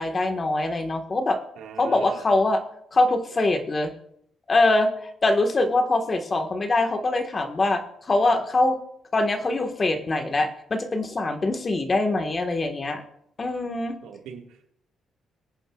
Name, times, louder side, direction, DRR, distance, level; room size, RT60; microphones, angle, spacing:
voice 1, 0.0-1.4 1.8-2.6 2.9-3.9 4.5-8.8 9.1-13.0 13.4-14.0, left 2 dB, 35° left, 6 dB, 1.5 m, -23 dB
voice 2, 1.6-2.2 14.0-14.7, right 7 dB, 90° right, 3 dB, 1.8 m, -41 dB
22.5 x 9.1 x 2.4 m, 0.71 s
cardioid pair, 90°, 0 cm